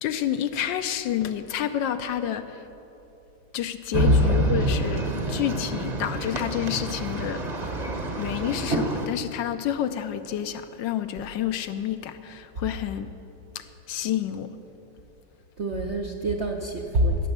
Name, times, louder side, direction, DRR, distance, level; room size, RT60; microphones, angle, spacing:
voice 1, 0.0-2.6 3.5-7.4 8.2-13.1 13.5-14.5, left 10 dB, 75° left, 10 dB, 1.3 m, -29 dB
sound 1, 3.9-9.1, right 2 dB, 30° right, 0.8 m, -28 dB
voice 2, 4.0-4.4 15.6-17.3, equal, 60° right, 2 dB, 0.7 m, -24 dB
15.5 x 7.0 x 8.0 m, 2.9 s
omnidirectional pair, 2.1 m